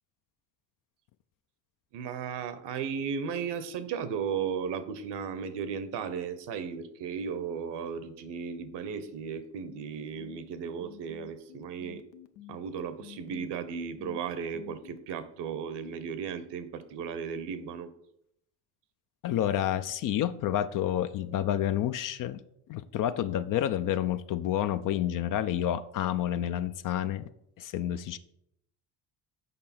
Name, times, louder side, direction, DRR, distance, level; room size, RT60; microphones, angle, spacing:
voice 1, 1.9-12.0 12.5-17.9, right 6 dB, 60° right, 1.0 m, -35 dB
sound 1, 8.9-15.0, left 15 dB, 80° left, 0.7 m, -50 dB
voice 2, 19.2-22.4 22.7-27.3 27.6-28.2, left 11 dB, 45° left, 0.5 m, -29 dB
6.9 x 5.2 x 4.3 m
hypercardioid pair, 60°, 48 cm